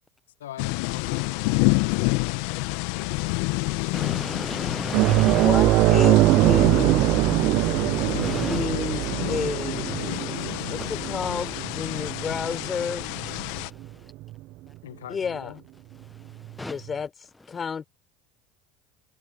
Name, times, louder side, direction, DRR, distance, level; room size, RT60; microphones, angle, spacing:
voice 1, 0.4-4.0 6.4-6.7 14.8-15.6, left 12 dB, 80° left, 1.7 m, -43 dB
sound 1, 0.6-13.7, left 26 dB, 65° left, 1.3 m, -29 dB
voice 2, 3.2-5.5 7.5-8.6 10.1-10.9 13.5-14.1 16.0-16.8, left 2 dB, 10° left, 0.8 m, -37 dB
sound 2, 4.9-13.9 14.2-14.4 16.4-16.5, right 18 dB, 60° right, 0.3 m, -22 dB
voice 3, 5.4-7.2 8.4-9.9 10.7-13.1 15.1-15.5 16.7-17.1 17.5-17.9, left 6 dB, 30° left, 4.6 m, -31 dB
hypercardioid pair, 80°, 0 cm